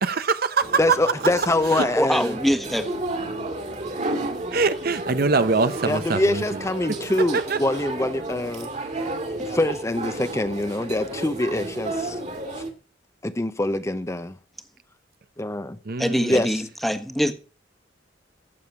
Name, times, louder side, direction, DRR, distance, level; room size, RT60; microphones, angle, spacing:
voice 1, 0.0-0.7 1.7-1.8 4.5-6.4 7.3-7.6 15.9-16.4, right 4 dB, 55° right, 0.8 m, -23 dB
sound 1, 0.6-12.7, right 2 dB, 40° right, 2.3 m, -32 dB
voice 2, 0.8-2.3 5.8-8.7 9.4-12.2 12.6-12.7 13.2-14.4 15.4-15.8 16.3-16.5, left 1 dB, 15° left, 0.8 m, -24 dB
voice 3, 2.0-2.9 16.0-17.3, equal, ahead, 1.4 m, -23 dB
15.5 x 7.0 x 5.8 m
head